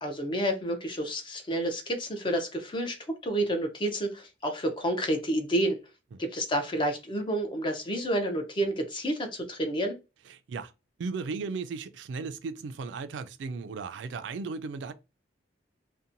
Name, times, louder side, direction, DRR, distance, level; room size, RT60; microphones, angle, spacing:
voice 1, 0.0-3.0 3.2-5.8 6.2-10.0, right 1 dB, 25° left, 0.5 m, -29 dB
voice 2, 10.3-10.7 11.0-14.9, right 4 dB, 75° right, 0.3 m, -36 dB
2.7 x 2.1 x 2.5 m
head